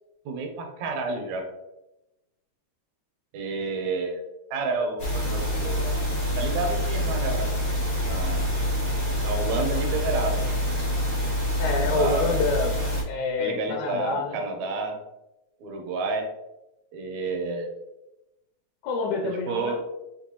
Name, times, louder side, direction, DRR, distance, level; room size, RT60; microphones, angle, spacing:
voice 1, 0.3-1.5 3.3-4.2 4.5-6.0 6.4-7.5 8.0-8.7 9.2-10.6 11.8-12.4 13.4-15.0 15.6-16.3 16.9-17.7 19.5-19.8, right 3 dB, 75° right, 3 dB, 1.9 m, -30 dB
sound 1, 5.0-13.0, left 1 dB, 60° left, 0.5 m, -26 dB
voice 2, 11.6-12.7 13.1-14.4 18.8-19.8, left 3 dB, 80° left, 1 dB, 2.0 m, -27 dB
6.0 x 2.7 x 2.9 m, 0.94 s
omnidirectional pair, 3.5 m